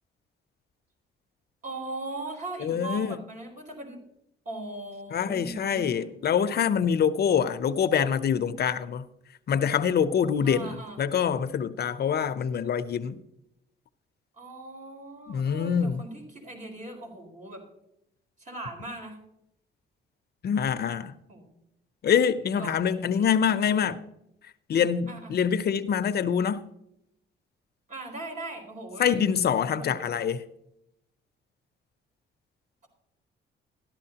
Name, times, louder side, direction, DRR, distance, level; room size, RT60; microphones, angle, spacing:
voice 1, 1.6-4.0 4.5-6.1 10.4-11.0 14.4-17.6 18.4-19.2 21.3-21.6 22.4-23.3 25.1-25.3 27.9-29.2 29.7-30.1, right 2 dB, 40° right, 4.1 m, -39 dB
voice 2, 2.6-3.2 5.1-9.0 9.5-13.2 15.3-16.0 20.4-21.1 22.0-24.0 24.7-26.6 29.0-30.4, left 7 dB, 55° left, 0.7 m, -25 dB
13.5 x 11.5 x 2.9 m
cardioid pair, 90°, 20 cm